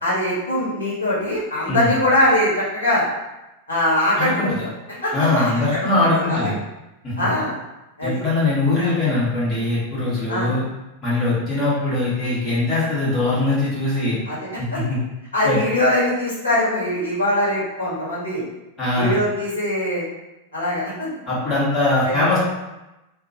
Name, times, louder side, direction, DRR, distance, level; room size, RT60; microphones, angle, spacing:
voice 1, 0.0-3.0 3.7-4.7 5.0-5.8 6.1-6.5 7.2-7.5 8.0-8.2 8.8-8.9 10.3-10.5 14.3-14.8 15.3-18.4 19.0-20.0 20.5-21.1 22.0-22.2, left 1 dB, 75° left, -8 dB, 1.2 m, -22 dB
voice 2, 4.2-4.6 5.1-6.5 7.0-7.1 8.0-10.6 11.0-14.2 14.6-15.0 15.4-15.6 18.8-19.1 21.3-22.4, left 2 dB, 25° left, -8 dB, 1.5 m, -21 dB
2.8 x 2.6 x 2.6 m, 0.99 s
figure-of-eight pair, 90°, 0 cm